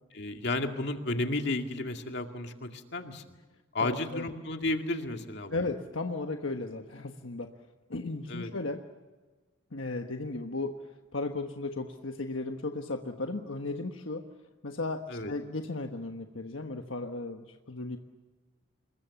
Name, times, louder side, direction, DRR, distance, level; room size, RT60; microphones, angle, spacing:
voice 1, 0.1-3.2 3.7-5.5 8.3-8.5 15.1-15.3, left 2 dB, 55° left, 4 dB, 2.2 m, -32 dB
voice 2, 3.8-4.2 5.5-7.5 7.9-8.8 9.7-10.8 11.1-14.2 14.6-18.0, left 3 dB, 75° left, 4 dB, 1.3 m, -35 dB
27.0 x 22.0 x 7.1 m, 1.3 s
head